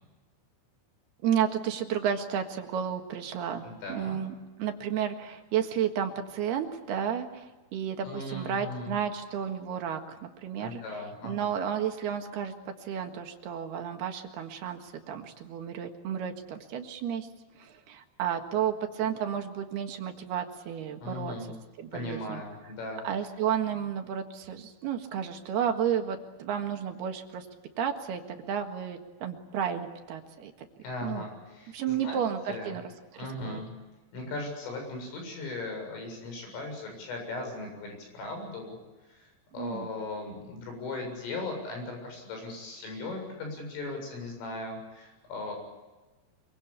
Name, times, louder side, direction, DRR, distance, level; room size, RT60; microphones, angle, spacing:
voice 1, 1.2-10.8 11.2-17.3 17.6-21.3 21.8-22.4 23.0-27.5 27.8-30.7 31.0-31.3 31.7-32.8 33.1-33.6 39.6-39.9, right 8 dB, 60° right, 5 dB, 3.3 m, -32 dB
voice 2, 3.6-4.2 8.0-8.9 10.6-11.5 21.0-21.5 21.9-23.0 30.8-32.8 33.2-33.7 34.1-38.8 39.1-45.5, left 2 dB, 80° left, 3 dB, 10.0 m, -38 dB
25.0 x 23.5 x 8.5 m, 1.2 s
omnidirectional pair, 5.7 m